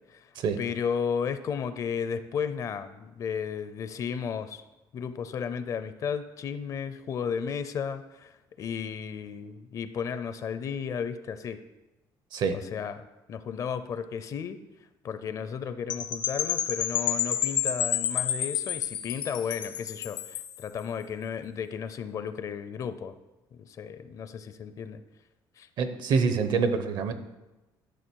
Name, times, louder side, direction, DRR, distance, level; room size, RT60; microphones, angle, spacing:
voice 1, 0.6-4.6 4.9-11.6 12.5-14.6 15.0-23.1 23.5-25.0 25.6-25.7, left 7 dB, 45° left, 12 dB, 0.6 m, -34 dB
Percussion / Wind chime, 15.9-20.6, left 10 dB, 75° left, 0.7 m, -29 dB
voice 2, 25.8-27.1, right 5 dB, 60° right, 10 dB, 0.9 m, -26 dB
11.5 x 6.6 x 4.6 m, 1.0 s
cardioid pair, 150°, 8 cm